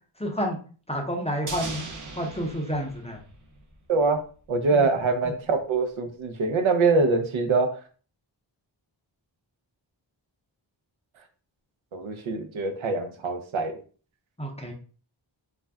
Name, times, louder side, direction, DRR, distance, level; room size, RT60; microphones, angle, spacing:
voice 1, 0.2-0.6 0.9-1.9 2.2-3.2 4.7-4.9 5.3-5.4 14.4-14.7, equal, 15° left, 1 dB, 0.6 m, -30 dB
sound 1, 1.5-3.9 4.1-4.2, right 3 dB, 40° right, 0.6 m, -39 dB
voice 2, 3.9-4.2 4.5-7.8 11.9-13.7, right 3 dB, 80° right, 6 dB, 0.6 m, -24 dB
2.4 x 2.1 x 3.4 m, 0.40 s
wide cardioid pair, 85°, 47 cm